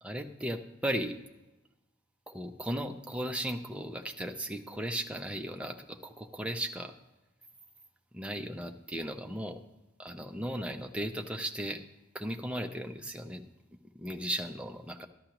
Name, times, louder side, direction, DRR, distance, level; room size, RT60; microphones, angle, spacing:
voice 1, 0.0-1.2 2.3-7.0 8.1-9.6 10.0-11.8 12.1-13.4 13.9-15.1, right 1 dB, 5° right, 5 dB, 0.5 m, -36 dB
13.0 x 11.5 x 2.9 m, 1.0 s
head